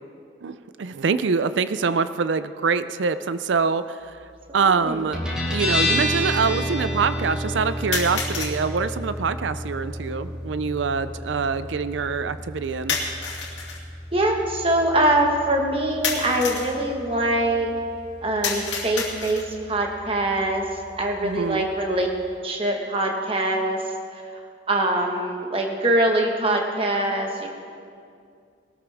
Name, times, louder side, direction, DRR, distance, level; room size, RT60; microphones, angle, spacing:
voice 1, 0.4-4.0 4.5-5.2 5.5-13.0 21.2-21.7, right 5 dB, 85° right, 13 dB, 0.5 m, -24 dB
sound 1, 3.6-3.7 4.6-4.7 7.9-8.6 12.9-13.8 16.0-16.7 18.4-19.6, left 5 dB, 85° left, 2.5 m, -29 dB
voice 2, 4.6-5.0 14.1-17.7 18.2-20.7 21.0-22.1 22.4-24.2 24.7-27.5, right 1 dB, 30° right, 2 dB, 1.5 m, -23 dB
Guitar, 5.1-22.3, equal, 5° right, 3.6 m, -32 dB
20.5 x 13.5 x 3.5 m, 2.3 s
head